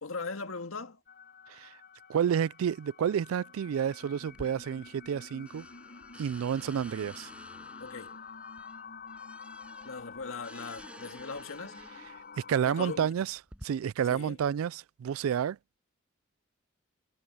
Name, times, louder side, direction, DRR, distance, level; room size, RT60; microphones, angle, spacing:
voice 1, 0.0-1.0 7.8-8.2 9.9-11.8 12.7-13.1 14.1-14.4, left 4 dB, 80° left, 1.9 m, -39 dB
sound 1, 1.1-13.0, left 5 dB, 50° left, 6.9 m, -49 dB
voice 2, 2.1-5.7 6.2-7.3 12.5-13.4 13.6-15.6, right 8 dB, 85° right, 0.3 m, -30 dB
sound 2, 4.3-5.2 5.5-12.3 13.0-13.6, right 1 dB, 5° right, 5.6 m, -52 dB
head